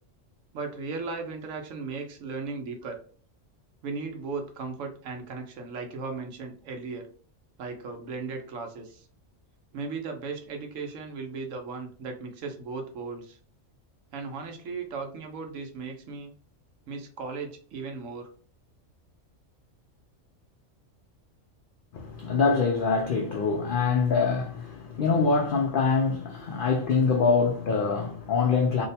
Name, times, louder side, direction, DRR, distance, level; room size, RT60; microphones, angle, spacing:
voice 1, 0.5-3.0 3.8-7.1 7.6-9.1 9.7-13.4 14.1-16.3 16.9-18.3, right 4 dB, 80° right, 1.1 m, -36 dB
voice 2, 21.9-28.9, left 4 dB, 65° left, 0.5 m, -24 dB
2.8 x 2.1 x 4.0 m
omnidirectional pair, 1.3 m